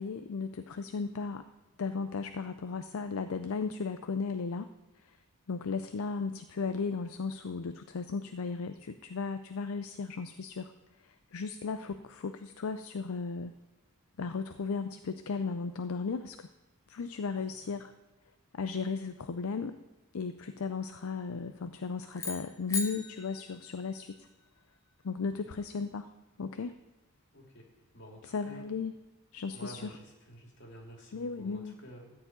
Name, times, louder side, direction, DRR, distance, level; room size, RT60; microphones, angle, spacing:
voice 1, 0.0-1.5 1.8-4.7 5.0-5.2 5.5-10.7 11.0-13.5 14.2-16.5 16.9-17.9 18.5-19.8 20.1-24.3 25.0-26.1 26.4-26.8 28.2-28.9 29.3-29.9 31.1-31.7, left 4 dB, 75° left, 9 dB, 0.5 m, -35 dB
sound 1, 22.1-24.5, left 3 dB, 15° left, 0.9 m, -39 dB
voice 2, 27.3-27.7 27.9-28.6 29.5-32.1, equal, 55° left, 0 dB, 2.6 m, -50 dB
13.5 x 4.8 x 8.7 m, 1.1 s
head